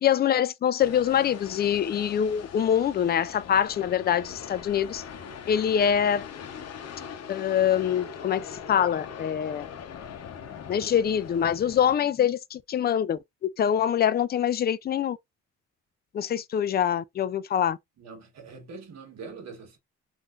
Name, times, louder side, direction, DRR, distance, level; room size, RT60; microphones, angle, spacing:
voice 1, 0.0-5.0 5.5-6.3 7.3-9.7 10.7-15.2 16.1-17.8, left 9 dB, 35° left, 0.4 m, -24 dB
sound 1, 0.8-12.0, left 7 dB, 55° left, 0.8 m, -41 dB
voice 2, 18.0-19.8, right 4 dB, 60° right, 1.5 m, -43 dB
3.6 x 2.7 x 2.4 m
cardioid pair, 90°, 30 cm